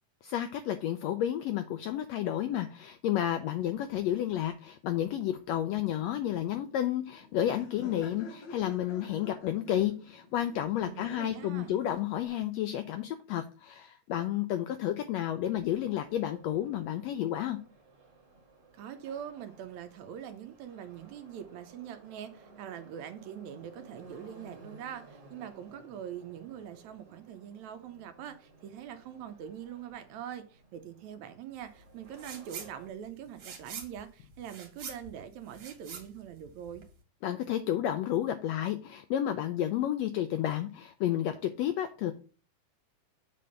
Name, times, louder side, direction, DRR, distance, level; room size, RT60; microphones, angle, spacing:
voice 1, 0.2-17.6 37.2-42.1, left 11 dB, 85° left, 1.5 m, -31 dB
Laughter, 6.0-12.3, left 3 dB, 65° left, 2.4 m, -50 dB
voice 2, 10.8-11.7 18.7-36.8, right 9 dB, 75° right, 1.8 m, -43 dB
Subway metro underground, 15.8-32.9, right 3 dB, 40° right, 2.2 m, -56 dB
sound 1, 32.1-32.7 33.0-37.0, right 6 dB, 55° right, 2.6 m, -45 dB
7.6 x 3.4 x 6.5 m
omnidirectional pair, 3.6 m